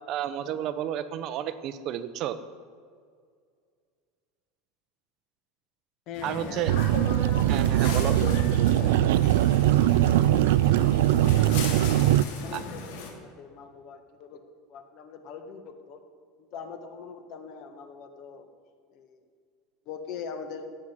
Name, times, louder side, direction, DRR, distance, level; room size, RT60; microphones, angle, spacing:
voice 1, 0.1-2.4 6.2-6.7 7.5-8.2 12.5-12.6, right 11 dB, 40° right, 12 dB, 0.8 m, -31 dB
sound 1, 6.1-13.1, left 4 dB, 70° left, 2.8 m, -36 dB
voice 2, 6.1-6.6 12.1-14.4 14.7-16.0 16.4-18.5 18.9-19.2 19.8-20.7, left 6 dB, 45° left, 6 dB, 1.5 m, -42 dB
sound 2, 6.7-12.2, right 13 dB, 85° right, 0.4 m, -21 dB
16.0 x 8.1 x 7.4 m, 2.1 s
supercardioid pair, 165°, 0 cm